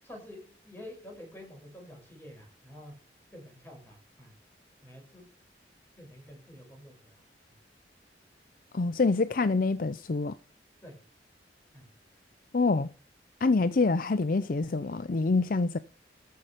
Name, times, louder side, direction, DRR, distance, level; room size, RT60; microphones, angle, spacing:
voice 1, 0.0-2.9 3.3-4.3 4.8-5.3 5.9-7.2 10.8-10.9 11.7-11.9, left 1 dB, 10° left, 6.9 m, -48 dB
voice 2, 8.7-10.4 12.5-12.9 13.4-15.8, left 3 dB, 50° left, 0.5 m, -26 dB
14.0 x 5.7 x 6.7 m
head